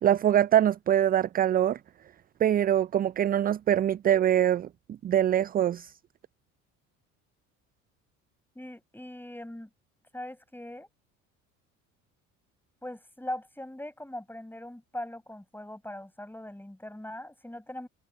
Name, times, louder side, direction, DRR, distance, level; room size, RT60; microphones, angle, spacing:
voice 1, 0.0-1.8 2.4-4.7 5.0-5.9, right 10 dB, 25° right, 0.4 m, -23 dB
voice 2, 8.5-9.7 10.1-10.9 12.8-17.9, left 1 dB, 5° left, 7.7 m, -40 dB
hypercardioid pair, 60°, 39 cm